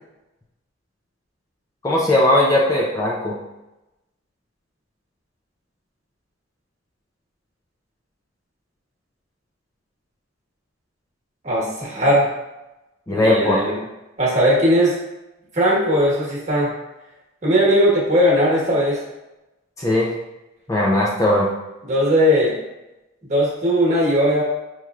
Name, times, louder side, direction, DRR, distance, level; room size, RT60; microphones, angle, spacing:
voice 1, 1.8-3.3 13.1-13.7 19.8-20.1 20.7-21.5, left 1 dB, 15° left, -4 dB, 0.4 m, -18 dB
voice 2, 11.4-12.3 13.1-13.8 14.2-15.0 15.5-16.7 17.4-19.0 21.9-22.6 23.3-24.4, equal, 35° right, -4 dB, 1.2 m, -18 dB
5.5 x 3.1 x 2.4 m, 0.98 s
head